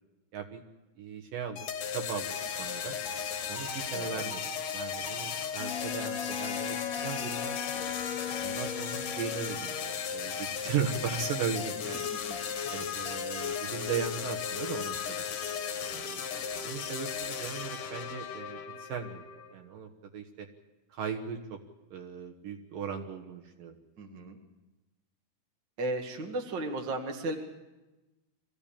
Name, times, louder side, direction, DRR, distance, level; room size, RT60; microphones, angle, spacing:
voice 1, 1.0-1.7 1.9-2.3 2.6-3.0 3.5-4.4 4.7-7.9 8.4-12.1 12.7-15.3 15.8-16.3 16.6-20.5 20.9-21.6 21.9-23.7, right 7 dB, 65° right, 3 dB, 2.7 m, -37 dB
sound 1, 1.6-19.5, left 7 dB, 60° left, 2.8 m, -36 dB
Wind instrument woodwind instrument, 5.6-9.7, left 10 dB, 80° left, 2.8 m, -39 dB
voice 2, 24.0-24.4 25.8-27.4, right 2 dB, 35° right, 3 dB, 2.1 m, -35 dB
24.5 x 15.5 x 8.8 m, 1.1 s
omnidirectional pair, 4.6 m